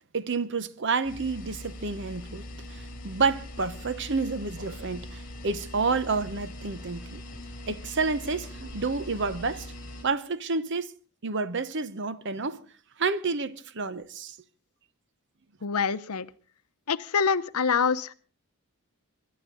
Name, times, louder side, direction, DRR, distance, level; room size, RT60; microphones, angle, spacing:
voice 1, 0.1-2.4 2.7-7.2 7.7-9.7 10.0-10.9 11.2-12.6 13.0-14.4, right 4 dB, 55° right, 0.8 m, -29 dB
sound 1, 1.0-10.0, left 1 dB, 40° left, 4.6 m, -42 dB
voice 2, 15.6-16.3 16.9-18.1, left 6 dB, 85° left, 0.8 m, -25 dB
26.0 x 11.5 x 3.8 m
head